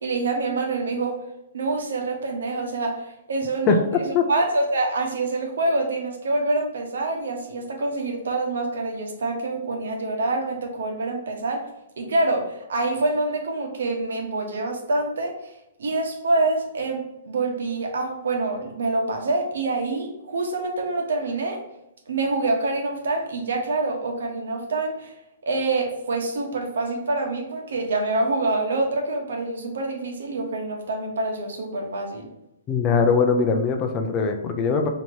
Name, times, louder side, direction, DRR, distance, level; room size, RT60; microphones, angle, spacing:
voice 1, 0.0-1.2 1.5-3.8 4.3-11.7 12.0-15.5 15.8-21.6 22.1-25.1 25.4-32.3, right 2 dB, 85° right, 2 dB, 1.0 m, -26 dB
voice 2, 32.7-34.9, left 5 dB, 20° left, 4 dB, 0.4 m, -21 dB
2.9 x 2.8 x 4.5 m, 0.86 s
hypercardioid pair, 165°, 0 cm